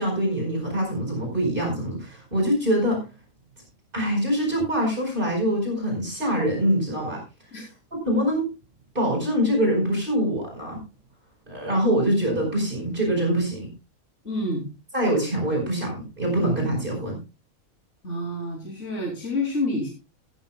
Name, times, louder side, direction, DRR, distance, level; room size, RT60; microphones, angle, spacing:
voice 1, 0.0-3.0 3.9-7.2 7.9-8.5 8.9-10.8 11.5-13.7 14.9-17.1, equal, 40° right, 1 dB, 5.1 m, -24 dB
voice 2, 14.2-14.7 18.0-19.9, left 1 dB, 55° left, -2 dB, 3.4 m, -28 dB
16.0 x 14.0 x 2.2 m, 0.30 s
omnidirectional pair, 1.4 m